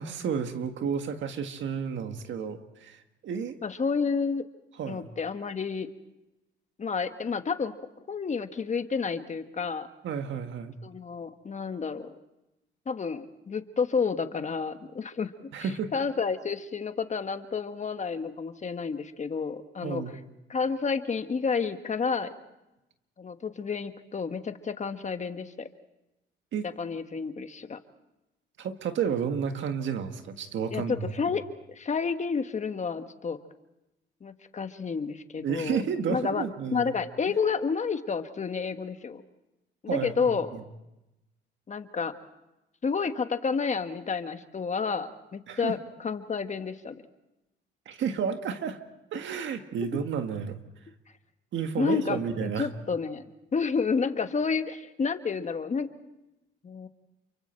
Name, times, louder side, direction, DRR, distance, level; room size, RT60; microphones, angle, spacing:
voice 1, 0.0-3.6 4.8-5.0 10.0-10.7 15.5-15.9 19.8-20.2 26.5-26.7 28.6-31.4 35.4-36.9 39.9-40.6 45.5-45.7 47.9-48.8 49.1-50.6 51.5-52.7, right 7 dB, 70° right, 7 dB, 1.8 m, -31 dB
voice 2, 3.6-4.4 4.9-5.9 6.8-7.7 8.1-9.9 10.8-12.1 12.9-20.0 20.5-22.3 23.2-25.7 26.6-27.8 30.7-31.4 31.7-33.4 34.2-35.8 36.1-36.4 36.7-39.2 39.8-40.5 41.7-42.1 42.8-47.0 49.8-49.9 51.8-53.3 53.5-55.9 56.6-56.9, left 5 dB, 35° left, 9 dB, 1.4 m, -30 dB
28.5 x 24.0 x 4.5 m, 0.95 s
cardioid pair, 90°, 20 cm